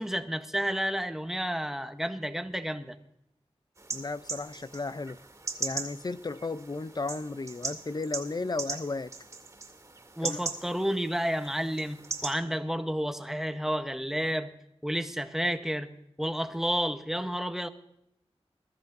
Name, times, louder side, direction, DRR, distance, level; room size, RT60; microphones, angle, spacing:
voice 1, 0.0-3.0 10.2-14.5 14.8-15.9 16.2-17.7, equal, 5° right, 1.0 m, -31 dB
sound 1, 3.8-12.3, right 4 dB, 30° right, 2.3 m, -39 dB
voice 2, 3.9-5.2 5.6-9.1 10.2-10.4 12.5-12.6, left 3 dB, 40° left, 0.5 m, -34 dB
22.0 x 13.5 x 2.6 m
wide cardioid pair, 50°, 11 cm